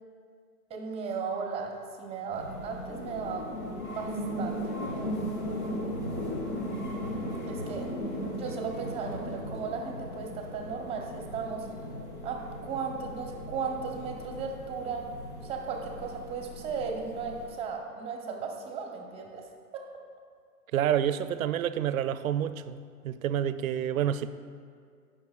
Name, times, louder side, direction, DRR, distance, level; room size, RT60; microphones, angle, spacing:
voice 1, 0.7-3.5 3.8-5.1 7.5-7.9 8.3-11.7 12.2-15.1 15.4-19.5 19.7-19.8, right 5 dB, 15° right, 2 dB, 0.7 m, -36 dB
sound 1, 2.3-17.5, equal, 75° left, 1.7 m, -37 dB
voice 2, 20.7-24.3, right 10 dB, 65° right, 13 dB, 0.5 m, -28 dB
17.0 x 5.8 x 2.4 m, 2.1 s
hypercardioid pair, 125°, 45 cm